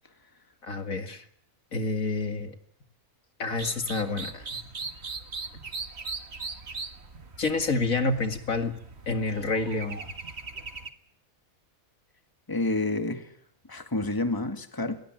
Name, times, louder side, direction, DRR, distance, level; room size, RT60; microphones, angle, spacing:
voice 1, 0.6-1.2 1.7-2.5 3.4-4.5 7.4-8.7 9.1-10.0, left 3 dB, 65° left, 7 dB, 2.5 m, -28 dB
sound 1, 3.5-10.9, right 4 dB, 45° right, 1.9 m, -39 dB
voice 2, 12.5-13.3 13.7-15.0, left 2 dB, 15° left, 7 dB, 2.1 m, -29 dB
29.5 x 17.5 x 9.2 m, 0.68 s
omnidirectional pair, 1.5 m